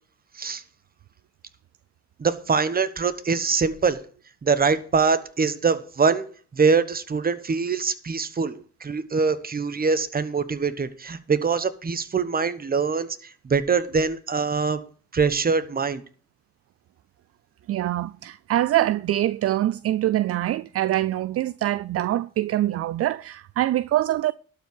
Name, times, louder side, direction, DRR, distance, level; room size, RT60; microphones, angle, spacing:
voice 1, 2.2-4.0 4.4-6.3 6.5-14.8 15.1-16.0, right 5 dB, 30° right, 1.1 m, -23 dB
voice 2, 17.7-24.3, right 14 dB, 50° right, 0.4 m, -24 dB
12.0 x 4.7 x 8.1 m
cardioid pair, 90°, 30 cm